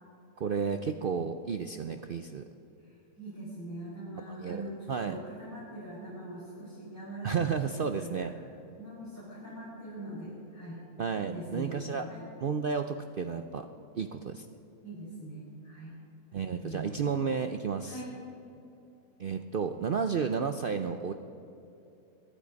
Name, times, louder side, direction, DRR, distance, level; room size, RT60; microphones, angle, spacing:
voice 1, 0.4-2.4 4.2-5.2 7.2-8.3 11.0-12.1 12.4-13.7 13.9-14.5 16.3-18.0 19.2-21.1, right 6 dB, 70° right, 7 dB, 0.5 m, -32 dB
voice 2, 2.8-8.3 8.8-10.8 11.2-12.3 14.8-15.9 16.6-17.1 17.8-18.1, right 1 dB, 10° left, -9 dB, 5.1 m, -42 dB
22.0 x 12.0 x 5.2 m, 2.8 s
omnidirectional pair, 1.7 m